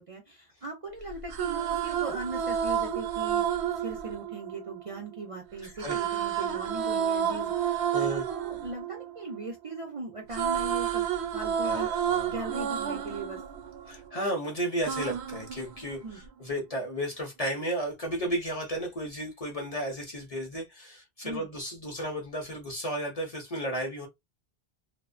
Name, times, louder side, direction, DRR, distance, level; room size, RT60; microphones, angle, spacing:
voice 1, 0.0-3.4 3.8-11.1 11.3-11.9 12.3-13.4 16.0-16.2 21.2-21.5, right 3 dB, 45° right, 0.5 m, -39 dB
sound 1, 1.1-5.2 5.8-9.8 10.1-14.3 14.8-16.3, right 9 dB, 80° right, 0.8 m, -30 dB
voice 2, 5.6-6.0 7.9-8.3 11.6-12.3 13.9-24.1, equal, 45° left, 0.6 m, -33 dB
2.5 x 2.1 x 2.4 m
omnidirectional pair, 1.1 m